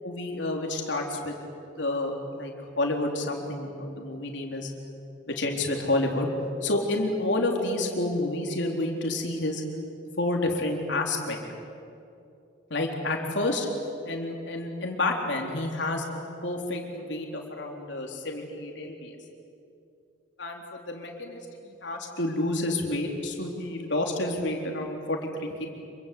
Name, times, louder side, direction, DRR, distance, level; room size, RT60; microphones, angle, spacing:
voice 1, 0.0-1.4 1.8-4.7 5.4-6.3 6.6-9.6 10.2-11.4 12.7-13.7 14.1-19.2 20.4-25.7, left 2 dB, 70° left, 1 dB, 3.8 m, -29 dB
27.0 x 24.5 x 8.5 m, 2.6 s
head